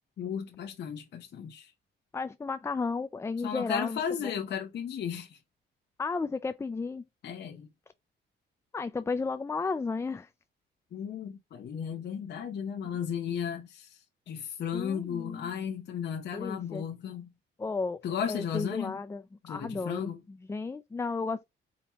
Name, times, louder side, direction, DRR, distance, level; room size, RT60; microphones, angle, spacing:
voice 1, 0.2-1.7 3.4-5.4 7.2-7.7 10.9-17.3 18.0-19.0 19.4-20.2, left 8 dB, 60° left, 0.9 m, -35 dB
voice 2, 2.1-4.4 6.0-7.0 8.7-10.3 14.7-15.5 16.3-16.8 17.6-18.0 18.3-19.2 19.5-21.4, left 4 dB, 15° left, 0.3 m, -33 dB
4.9 x 2.9 x 3.0 m
cardioid pair, 90°, 20 cm